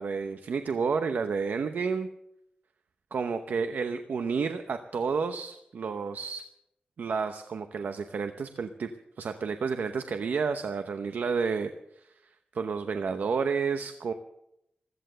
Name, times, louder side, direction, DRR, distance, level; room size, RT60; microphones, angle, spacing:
voice 1, 0.0-2.1 3.1-6.5 7.0-8.9 9.2-12.1 12.5-14.1, right 5 dB, 80° right, 8 dB, 0.9 m, -30 dB
15.5 x 13.5 x 6.8 m, 0.80 s
wide cardioid pair, 130°, 3 cm